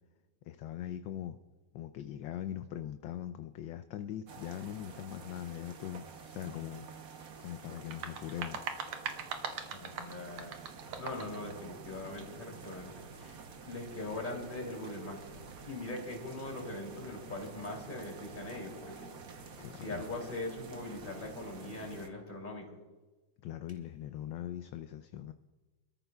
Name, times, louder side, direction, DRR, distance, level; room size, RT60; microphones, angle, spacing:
voice 1, 0.4-1.4 1.7-6.9 7.4-8.7 10.9-11.0 19.6-20.0 23.4-25.3, left 11 dB, 75° left, 9 dB, 1.2 m, -41 dB
sound 1, 4.3-22.1, right 5 dB, 50° right, 1.2 m, -49 dB
sound 2, 7.8-11.4, right 6 dB, 85° right, 1.9 m, -40 dB
voice 2, 9.7-10.6 11.0-13.4 13.6-15.2 15.7-19.1 19.7-22.6, left 2 dB, 20° left, -1 dB, 3.0 m, -41 dB
27.5 x 14.0 x 2.3 m, 1.2 s
omnidirectional pair, 2.3 m